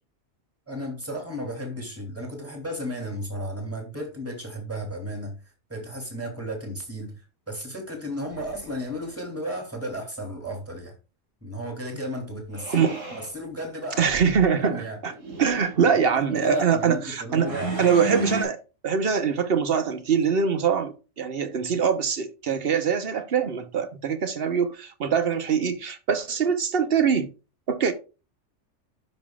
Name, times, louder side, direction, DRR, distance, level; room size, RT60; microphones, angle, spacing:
voice 1, 0.7-5.4 5.7-10.9 11.4-14.1 14.6-15.0 16.3-17.8, equal, 10° right, 2.9 m, -34 dB
sound 1, 8.3-9.1 12.5-13.3 14.0-14.5 15.1-15.8 17.4-18.4, right 2 dB, 75° right, 2.8 m, -33 dB
voice 2, 14.0-15.1 15.4-17.5 17.8-18.6 18.8-27.3 27.7-27.9, right 6 dB, 50° right, 1.2 m, -23 dB
12.5 x 5.6 x 2.4 m
omnidirectional pair, 1.4 m